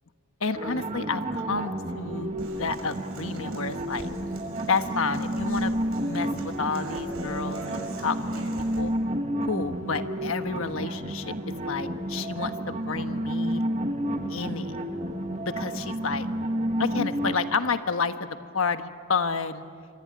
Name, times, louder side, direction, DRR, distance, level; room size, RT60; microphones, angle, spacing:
voice 1, 0.4-2.3 2.6-4.1 4.7-8.5 8.8-8.9 9.4-11.3 11.7-13.6 14.3-14.8 15.4-16.3 16.8-18.3 18.5-19.6, left 4 dB, 65° left, 8 dB, 1.3 m, -30 dB
sound 1, 0.6-17.3, right 1 dB, 30° right, 1.7 m, -31 dB
Human voice / Acoustic guitar, 2.4-8.8, right 2 dB, 85° right, 6.4 m, -41 dB
26.5 x 24.0 x 8.8 m, 2.2 s
head